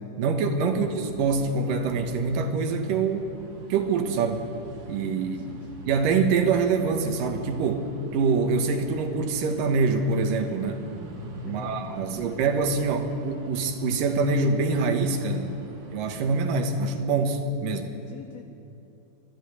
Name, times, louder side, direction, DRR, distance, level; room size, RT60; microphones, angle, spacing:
voice 1, 0.2-3.3 3.7-4.4 4.9-5.5 5.9-10.8 11.5-15.5 15.9-17.9, right 4 dB, 80° right, 5 dB, 3.0 m, -25 dB
sound 1, 0.6-16.7, right 1 dB, 45° right, 2.7 m, -44 dB
voice 2, 0.7-1.0 5.3-5.7 11.4-12.8 18.1-18.5, left 7 dB, 80° left, 8 dB, 1.4 m, -46 dB
26.0 x 10.5 x 9.7 m, 2.8 s
omnidirectional pair, 3.9 m